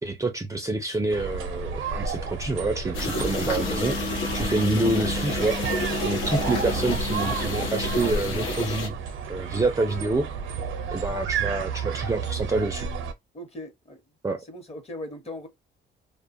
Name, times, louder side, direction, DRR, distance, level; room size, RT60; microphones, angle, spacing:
voice 1, 0.0-9.0 9.3-10.3 10.9-12.9 14.2-14.4, right 2 dB, 15° right, 0.4 m, -27 dB
sound 1, 1.1-13.1, right 6 dB, 80° right, 0.6 m, -32 dB
sound 2, 2.9-8.9, left 3 dB, 85° left, 0.9 m, -29 dB
voice 2, 13.3-14.0 14.4-15.5, left 1 dB, 30° left, 0.9 m, -39 dB
2.4 x 2.2 x 2.5 m
cardioid pair, 90°, 20 cm